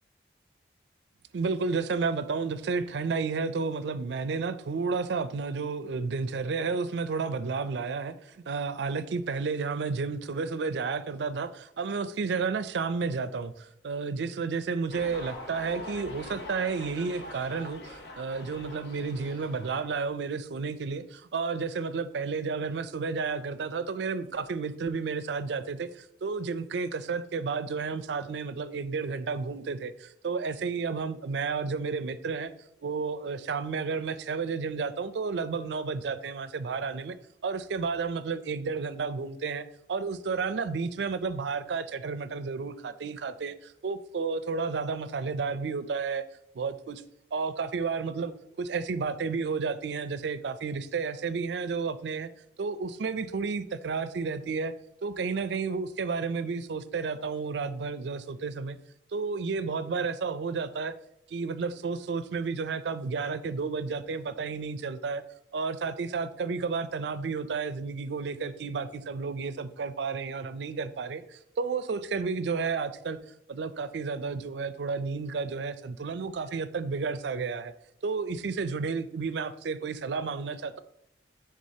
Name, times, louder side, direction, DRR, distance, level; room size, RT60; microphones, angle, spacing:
voice 1, 1.3-32.5 32.8-37.2 37.4-46.3 46.5-47.0 47.3-52.3 52.6-54.7 55.0-58.8 59.1-60.9 61.3-65.2 65.5-73.2 73.5-77.7 78.0-80.8, right 4 dB, 70° right, 13 dB, 0.4 m, -32 dB
sound 1, 14.9-20.1, left 2 dB, 65° left, 0.9 m, -44 dB
9.4 x 3.7 x 2.8 m, 0.76 s
head